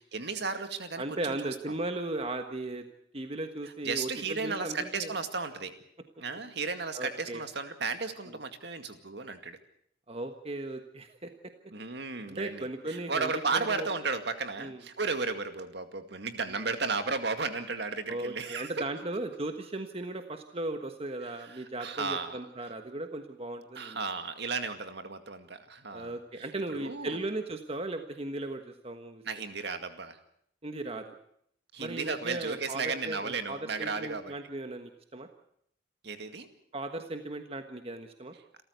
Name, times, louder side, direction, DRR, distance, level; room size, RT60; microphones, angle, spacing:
voice 1, 0.0-1.8 3.8-5.7 6.2-9.6 11.7-18.9 21.2-22.4 23.8-27.3 29.2-30.2 31.7-34.3 36.0-36.5, right 4 dB, 60° right, 8 dB, 2.2 m, -34 dB
voice 2, 1.0-2.8 3.1-5.1 6.9-7.5 8.3-8.4 10.1-11.3 12.3-13.9 14.6-14.8 16.5-16.6 18.1-24.0 25.9-29.2 30.6-31.1 31.8-35.3 36.7-38.3, right 2 dB, 30° right, 6 dB, 1.4 m, -37 dB
28.0 x 14.0 x 8.1 m, 0.70 s
head